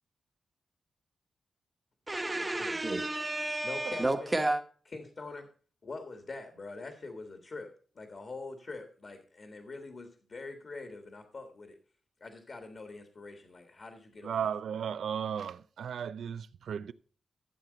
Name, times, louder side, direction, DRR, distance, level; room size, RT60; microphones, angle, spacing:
voice 1, 2.1-4.6, right 2 dB, 15° right, 1.2 m, -31 dB
voice 2, 3.6-4.5 4.8-5.5 5.8-7.7 7.9-11.8 12.2-14.5, left 3 dB, 40° left, 1.6 m, -44 dB
voice 3, 14.2-16.9, right 8 dB, 80° right, 0.5 m, -35 dB
13.5 x 7.6 x 4.0 m
wide cardioid pair, 145°, 0 cm